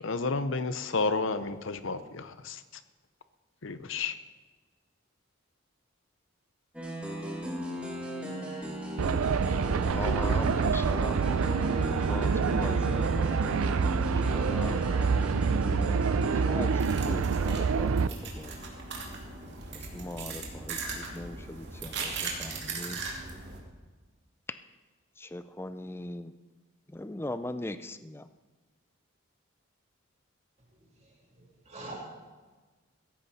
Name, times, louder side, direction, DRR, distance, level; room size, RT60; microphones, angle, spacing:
voice 1, 0.0-2.8 3.6-4.1, left 3 dB, 65° left, 12 dB, 0.8 m, -31 dB
sound 1, 6.7-16.7, equal, 5° right, 2.3 m, -36 dB
sound 2, 9.0-18.1, right 5 dB, 85° right, 0.5 m, -27 dB
voice 2, 9.8-11.3 12.1-14.8 15.2-15.6 16.3-18.5 19.9-23.0 25.2-26.3 26.9-28.3, left 1 dB, 10° left, 12 dB, 0.4 m, -40 dB
sound 3, 16.7-23.6, right 4 dB, 55° right, 2.5 m, -38 dB
voice 3, 30.7-31.9, right 2 dB, 30° right, -4 dB, 3.1 m, -47 dB
16.0 x 14.0 x 4.2 m, 1.3 s
head